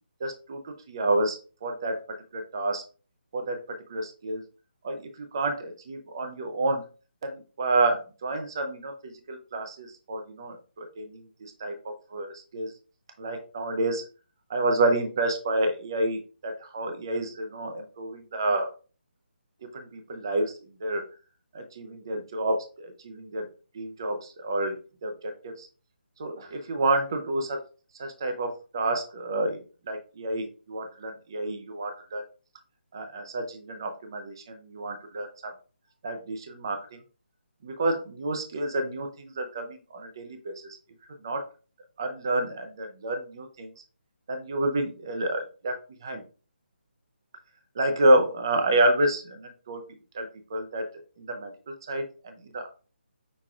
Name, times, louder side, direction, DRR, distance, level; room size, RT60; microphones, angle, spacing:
voice 1, 0.2-0.6 0.9-2.0 2.3-2.8 3.3-3.6 3.9-4.4 4.8-6.8 7.2-12.7 13.2-14.0 14.5-18.7 19.7-20.5 20.8-21.0 21.5-23.5 23.7-24.7 25.0-25.7 26.2-27.6 28.0-29.6 29.9-32.2 32.9-35.5 36.0-37.0 37.6-40.8 41.2-41.4 42.0-43.7 44.3-46.2 47.8-49.8 50.1-50.9 51.2-51.5 51.9-52.7, right 2 dB, 25° right, 6 dB, 0.5 m, -29 dB
5.9 x 3.5 x 2.4 m, 0.35 s
hypercardioid pair, 175°, 6 cm